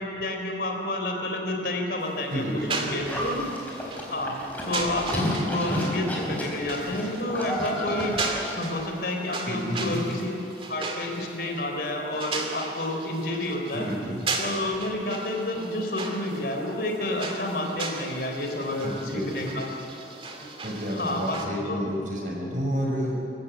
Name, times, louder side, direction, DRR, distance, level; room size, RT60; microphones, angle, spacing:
voice 1, 0.0-2.4 2.7-3.5 4.1-4.4 4.6-8.2 8.6-10.3 10.7-13.9 14.4-19.7 20.4-20.5 20.9-21.4 21.7-21.8, left 1 dB, 60° left, 2 dB, 4.0 m, -30 dB
sound 1, 2.0-21.5, right 3 dB, 30° right, 2.5 m, -37 dB
voice 2, 2.3-3.2 9.5-10.1 13.7-14.2 18.8-19.6 20.6-23.2, equal, 45° right, 0 dB, 5.7 m, -30 dB
Livestock farm animals working animals, 3.1-8.8, equal, 10° left, 4.3 m, -31 dB
26.5 x 15.5 x 8.4 m, 2.8 s
head